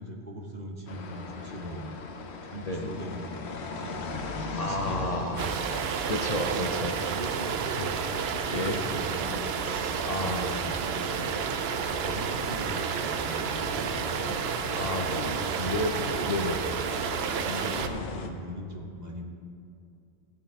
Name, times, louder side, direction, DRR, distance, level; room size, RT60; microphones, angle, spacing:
voice 1, 0.0-1.9 2.4-5.7 6.4-6.6 7.0-11.3 12.0-14.3 15.0-15.5 16.1-16.3 17.2-19.3, equal, 40° right, 1 dB, 1.1 m, -40 dB
sound 1, 0.9-18.3, left 3 dB, 80° left, 1.1 m, -40 dB
voice 2, 4.6-5.5 6.1-7.2 8.5-9.0 9.3-9.5 10.0-10.5 14.3-15.2 15.6-16.6, left 1 dB, 40° left, 2 dB, 0.8 m, -32 dB
sound 2, 5.4-17.9, right 7 dB, 75° right, 0.9 m, -31 dB
14.5 x 8.6 x 3.6 m, 2.5 s
omnidirectional pair, 1.1 m